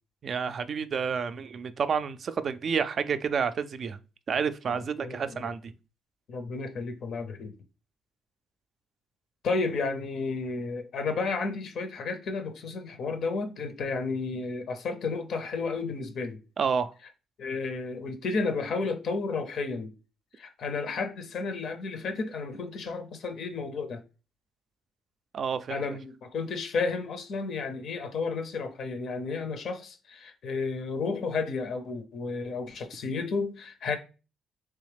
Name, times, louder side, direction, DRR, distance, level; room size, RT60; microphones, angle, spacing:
voice 1, 0.2-4.0 4.3-5.6 16.6-16.9 25.3-25.8, right 6 dB, 50° right, 0.3 m, -29 dB
voice 2, 5.0-5.5 6.3-7.5 9.4-16.4 17.4-19.9 20.4-24.0 25.7-34.0, left 4 dB, 65° left, 0.5 m, -32 dB
3.4 x 3.1 x 3.3 m
cardioid pair, 90°, 0 cm